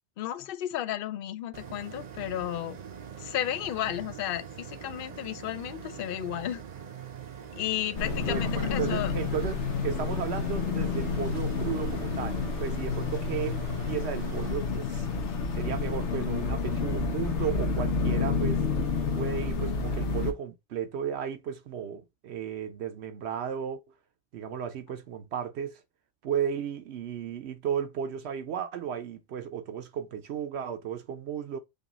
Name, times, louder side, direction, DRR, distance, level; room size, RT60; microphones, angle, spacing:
voice 1, 0.2-2.8 3.2-6.6 7.5-9.1, left 12 dB, 60° left, 0.7 m, -33 dB
sound 1, 1.5-14.5, right 8 dB, 50° right, 0.6 m, -43 dB
sound 2, 8.0-20.3, left 4 dB, 85° left, 1.2 m, -29 dB
voice 2, 8.2-13.6 13.8-15.1 15.6-18.7 19.1-23.8 24.3-25.8 26.2-31.6, right 8 dB, 75° right, 0.9 m, -34 dB
5.4 x 2.4 x 4.0 m
omnidirectional pair, 1.1 m